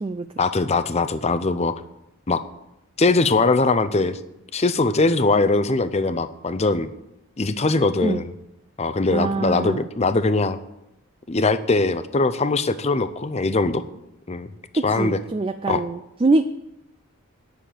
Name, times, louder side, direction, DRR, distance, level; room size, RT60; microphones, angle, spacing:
voice 1, 0.4-1.7 2.3-2.4 3.0-4.2 4.5-6.9 7.4-8.3 8.8-10.6 11.3-13.8 14.3-14.5 14.8-15.2 15.7-15.8, left 3 dB, 30° left, 12 dB, 0.6 m, -21 dB
voice 2, 9.1-9.8 14.7-16.4, right 2 dB, 25° right, 9 dB, 0.3 m, -23 dB
10.0 x 6.6 x 9.0 m, 0.88 s
head